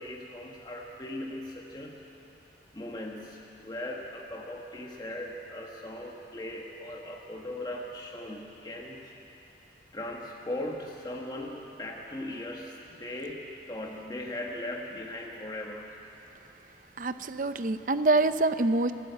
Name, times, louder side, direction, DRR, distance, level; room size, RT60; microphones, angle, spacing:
voice 1, 0.0-2.0 2.7-9.1 9.9-15.9, left 1 dB, 20° left, -1 dB, 1.3 m, -39 dB
voice 2, 17.0-18.9, right 2 dB, 45° right, 11 dB, 0.6 m, -25 dB
29.0 x 12.0 x 8.1 m, 2.9 s
head